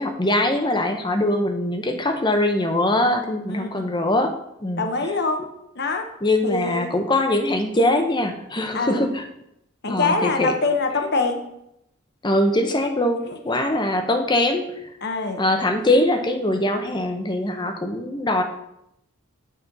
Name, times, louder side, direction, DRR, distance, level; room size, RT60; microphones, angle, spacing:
voice 1, 0.0-4.3 4.6-5.1 6.2-9.2 9.9-10.5 12.2-14.9 15.4-18.4, left 1 dB, 20° left, 6 dB, 0.8 m, -22 dB
voice 2, 3.5-3.9 4.8-5.4 5.7-6.1 6.4-7.0 8.7-9.1 9.8-11.4 13.3-13.4 15.0-15.4, left 3 dB, 50° left, 5 dB, 0.9 m, -24 dB
9.0 x 4.3 x 5.3 m, 0.81 s
head